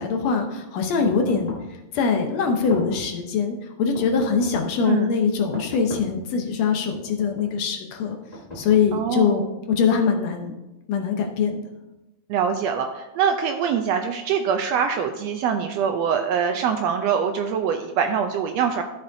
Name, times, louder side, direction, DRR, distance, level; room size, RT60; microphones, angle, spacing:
voice 1, 0.0-1.5 1.9-8.2 8.6-10.5 10.9-11.6, left 5 dB, 70° left, 3 dB, 1.9 m, -23 dB
sound 1, 1.0-1.8 2.5-3.2 3.9-4.7 5.5-6.3 7.0-7.6 8.3-9.2, left 1 dB, 50° left, 0.4 m, -39 dB
voice 2, 8.9-9.5 12.3-18.8, right 7 dB, 80° right, 5 dB, 1.5 m, -24 dB
13.0 x 6.9 x 2.7 m, 1.0 s
omnidirectional pair, 3.4 m